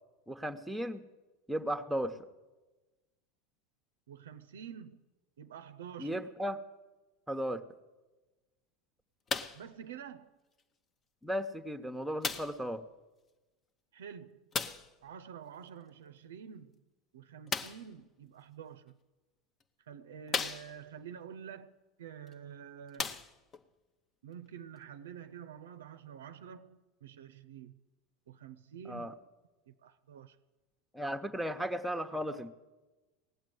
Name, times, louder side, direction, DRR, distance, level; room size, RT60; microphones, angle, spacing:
voice 1, 0.3-1.0 1.5-2.2 6.0-6.6 7.3-7.6 11.2-12.8 28.9-29.1 30.9-32.5, equal, 5° right, 0.9 m, -35 dB
voice 2, 4.1-5.0 5.4-6.2 9.5-10.3 13.9-14.5 15.0-16.8 17.1-18.9 19.9-23.2 24.2-27.8 28.3-29.1 29.7-30.4, right 8 dB, 75° right, 0.5 m, -48 dB
sound 1, 9.3-9.7 10.6-10.7 12.2-12.7 14.5-14.9 17.5-17.9 18.9-19.0 19.6-19.7 20.3-21.0 22.3-22.4 22.9-23.6 24.5-24.6, left 5 dB, 30° left, 0.8 m, -36 dB
18.0 x 7.4 x 9.4 m
hypercardioid pair, 85°, 0 cm